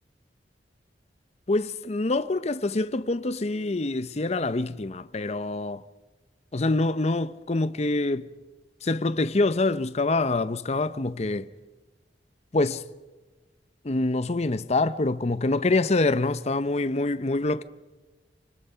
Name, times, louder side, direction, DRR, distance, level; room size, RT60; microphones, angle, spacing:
voice 1, 1.5-5.8 6.5-8.3 8.8-11.5 12.5-12.8 13.8-17.6, left 2 dB, 40° left, 0.7 m, -25 dB
29.0 x 25.0 x 5.7 m
head